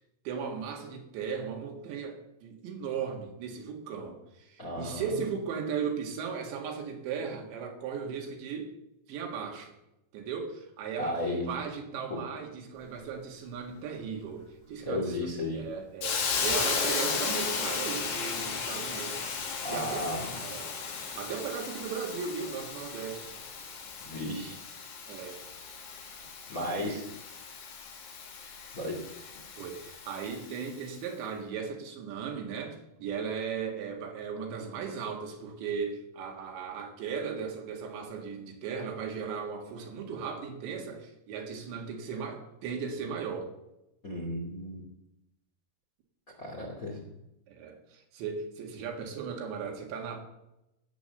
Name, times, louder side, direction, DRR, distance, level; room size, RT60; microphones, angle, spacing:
voice 1, 0.3-8.7 9.1-9.7 10.1-11.2 11.5-19.2 19.7-20.1 20.4-20.8 21.1-23.3 25.1-25.4 26.5-27.1 29.6-43.5 47.5-50.2, right 6 dB, 75° right, 2 dB, 4.1 m, -37 dB
voice 2, 4.6-5.1 11.0-11.5 12.1-12.2 14.8-15.6 19.6-20.4 24.0-24.6 26.5-27.0 28.7-29.0 44.0-44.8 46.4-47.1, left 1 dB, 30° left, 0 dB, 1.8 m, -34 dB
Hiss, 16.0-30.8, left 5 dB, 80° left, 4.9 m, -35 dB
18.0 x 8.3 x 6.5 m, 0.89 s
omnidirectional pair, 5.4 m